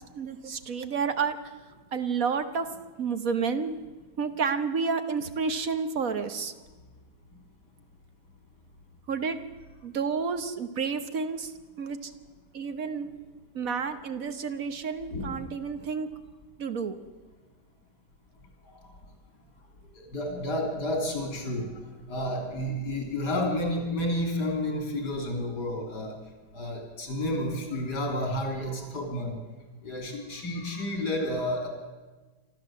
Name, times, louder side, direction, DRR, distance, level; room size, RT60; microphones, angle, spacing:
voice 1, 0.0-1.4 1.9-2.7 3.0-3.8 4.2-6.5 9.1-9.4 9.8-12.1 12.5-13.1 13.5-16.1 16.6-17.0, right 5 dB, 55° right, 9 dB, 1.4 m, -30 dB
voice 2, 15.1-15.4 18.6-18.9 19.9-21.8 22.1-26.2 26.5-29.3 29.8-31.7, left 1 dB, 75° left, 2 dB, 3.8 m, -31 dB
27.0 x 13.0 x 7.6 m, 1.3 s
omnidirectional pair, 1.8 m